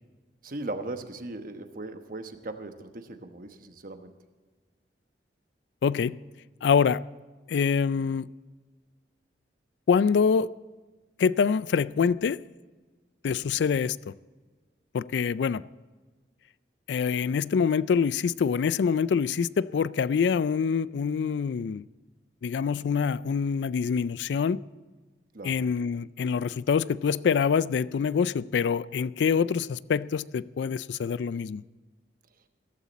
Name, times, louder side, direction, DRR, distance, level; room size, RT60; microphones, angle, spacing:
voice 1, 0.4-4.2 25.3-25.6, right 2 dB, 50° right, 7 dB, 1.2 m, -38 dB
voice 2, 5.8-6.2 6.6-7.0 7.5-8.3 9.9-10.5 11.2-12.4 13.2-14.1 14.9-15.6 16.9-21.8 22.4-24.6 25.4-31.6, left 6 dB, 80° left, 18 dB, 0.4 m, -25 dB
16.0 x 14.5 x 4.2 m, 1.3 s
head